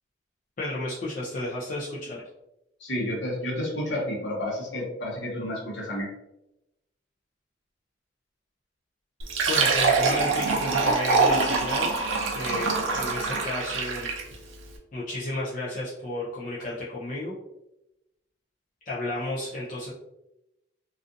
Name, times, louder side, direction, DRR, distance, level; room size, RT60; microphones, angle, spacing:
voice 1, 0.6-2.2 9.5-11.9 12.3-14.1 14.9-17.4 18.9-19.9, left 1 dB, 40° left, -6 dB, 0.4 m, -32 dB
voice 2, 2.8-6.1, left 1 dB, 65° left, -4 dB, 1.0 m, -30 dB
Fill (with liquid), 9.2-14.4, right 4 dB, 75° right, 0.5 m, -24 dB
2.4 x 2.4 x 2.5 m, 0.89 s
head